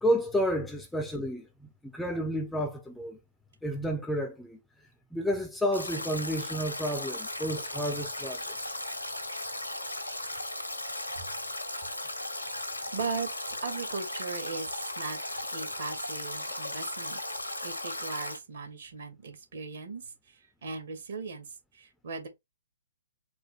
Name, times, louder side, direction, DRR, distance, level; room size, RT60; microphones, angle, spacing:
voice 1, 0.0-3.2 3.6-4.6 5.1-8.5, equal, 5° left, 0.6 m, -31 dB
Stream / Drip / Trickle dribble, 5.7-18.4, left 1 dB, 90° left, 1.5 m, -36 dB
voice 2, 12.9-17.2 17.6-21.5 21.7-22.3, right 4 dB, 55° right, 1.8 m, -38 dB
4.4 x 2.0 x 4.5 m
figure-of-eight pair, 125°, 0 cm